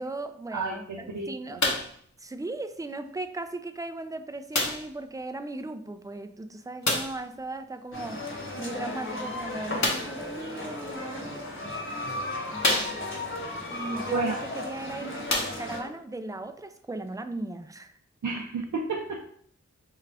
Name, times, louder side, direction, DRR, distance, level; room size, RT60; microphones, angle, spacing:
voice 1, 0.0-1.7 2.2-8.2 8.6-11.5 13.7-18.0, right 2 dB, 10° right, 8 dB, 0.3 m, -37 dB
voice 2, 0.5-1.6 14.1-14.4 18.2-19.3, right 3 dB, 85° right, 0 dB, 0.5 m, -31 dB
sound 1, 1.6-2.0 2.9-3.0 4.5-5.0 6.8-7.2 9.8-10.2 11.2-11.3 11.9-12.0 12.6-13.3 14.6-14.7 15.2-15.9 16.8-16.9, left 2 dB, 70° left, 0.9 m, -28 dB
sound 2, 7.9-15.8, left 2 dB, 45° left, 1.1 m, -35 dB
4.6 x 2.4 x 3.3 m, 0.63 s
wide cardioid pair, 50°, 29 cm